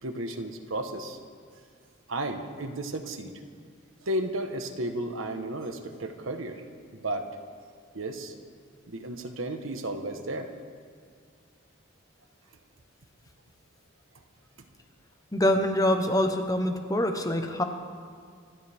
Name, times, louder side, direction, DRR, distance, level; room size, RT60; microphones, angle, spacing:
voice 1, 0.0-1.2 2.1-3.3 4.0-6.6 6.9-7.3 7.9-8.3 8.9-10.5, right 1 dB, 75° right, 5 dB, 1.3 m, -33 dB
voice 2, 15.3-17.6, left 1 dB, 15° left, 6 dB, 1.0 m, -25 dB
26.0 x 12.0 x 3.6 m, 2.1 s
head